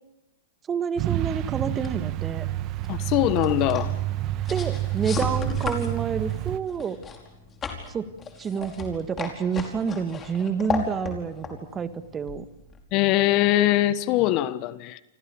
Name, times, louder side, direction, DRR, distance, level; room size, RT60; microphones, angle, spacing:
voice 1, 0.7-2.4 4.5-7.0 7.9-8.1 8.4-12.4, right 6 dB, 20° right, 1.7 m, -29 dB
Truck, 1.0-6.6, right 15 dB, 40° right, 1.4 m, -29 dB
sound 1, 1.8-12.9, left 5 dB, 20° left, 5.0 m, -36 dB
voice 2, 2.9-3.9 12.9-15.0, left 15 dB, 40° left, 1.3 m, -22 dB
29.0 x 25.5 x 7.1 m
hypercardioid pair, 120°, 0 cm